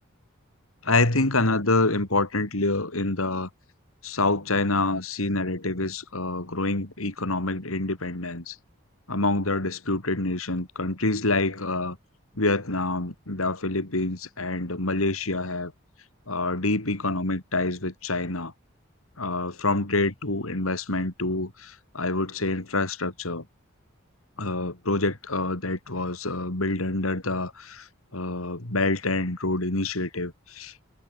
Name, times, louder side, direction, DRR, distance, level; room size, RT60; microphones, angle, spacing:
voice 1, 0.8-3.5 4.0-8.6 9.1-12.0 12.4-15.7 16.3-18.5 19.2-23.4 24.4-27.9 28.1-30.7, left 2 dB, 80° left, 3.4 m, -26 dB
head